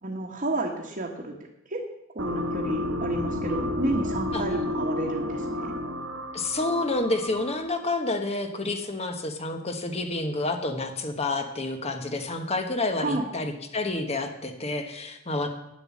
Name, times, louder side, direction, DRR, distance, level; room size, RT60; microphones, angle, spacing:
voice 1, 0.0-1.3 1.7-1.8 2.1-5.8 13.0-13.3, right 2 dB, 40° right, -2 dB, 1.4 m, -31 dB
sound 1, 2.2-7.8, left 1 dB, 65° right, 1.6 m, -31 dB
voice 2, 6.3-15.5, left 2 dB, 30° left, 6 dB, 1.2 m, -29 dB
9.9 x 7.8 x 7.3 m, 0.90 s
head